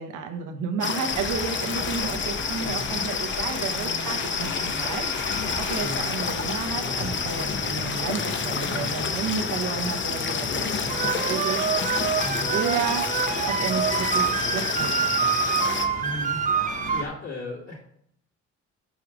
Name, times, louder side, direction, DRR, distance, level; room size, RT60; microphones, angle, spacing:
voice 1, 0.0-11.7 12.5-13.1 13.5-15.1, right 6 dB, 85° right, 4 dB, 1.1 m, -32 dB
sound 1, 0.8-15.9, left 6 dB, 40° left, 0.7 m, -29 dB
sound 2, 1.1-17.1, left 2 dB, 80° left, 2.0 m, -36 dB
sound 3, 10.9-17.0, right 7 dB, 25° right, 0.4 m, -26 dB
voice 2, 16.0-16.4 16.9-17.8, left 1 dB, 55° left, -7 dB, 2.5 m, -35 dB
5.5 x 4.8 x 6.3 m, 0.71 s
cardioid pair, 90°, 30 cm